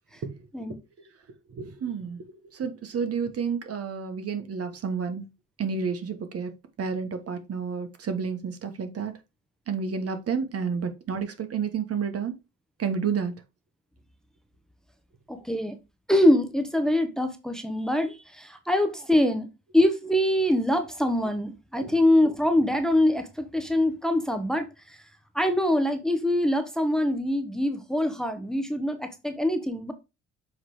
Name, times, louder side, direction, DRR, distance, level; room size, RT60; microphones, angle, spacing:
voice 1, 1.5-5.2 5.6-6.5 6.8-9.1 9.7-12.3 12.8-13.3 21.8-21.9, right 6 dB, 50° right, 1.3 m, -30 dB
voice 2, 15.3-15.8 16.1-19.5 19.7-25.0 25.3-29.9, left 1 dB, ahead, 1.0 m, -24 dB
7.1 x 3.3 x 4.7 m
cardioid pair, 90°, 30 cm